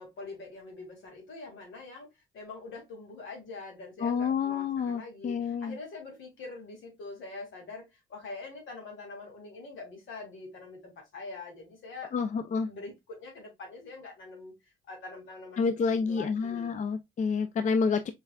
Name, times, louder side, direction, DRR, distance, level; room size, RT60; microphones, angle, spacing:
voice 1, 0.0-2.1 2.3-12.1 12.5-14.5 14.9-15.6 15.9-16.9, left 3 dB, 75° left, 2.2 m, -44 dB
voice 2, 4.0-5.7 12.1-12.7 15.6-18.1, left 5 dB, 40° left, 0.4 m, -29 dB
4.6 x 3.2 x 2.2 m
cardioid pair, 90°, 20 cm